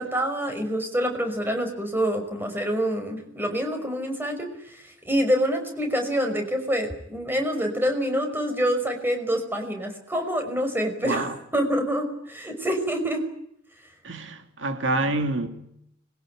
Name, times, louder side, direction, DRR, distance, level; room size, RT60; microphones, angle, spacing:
voice 1, 0.0-4.5 4.7-13.2, equal, 10° right, 5.5 m, -26 dB
voice 2, 11.0-11.3 14.0-15.5, right 2 dB, 70° right, 2.5 m, -27 dB
26.0 x 22.5 x 9.2 m
head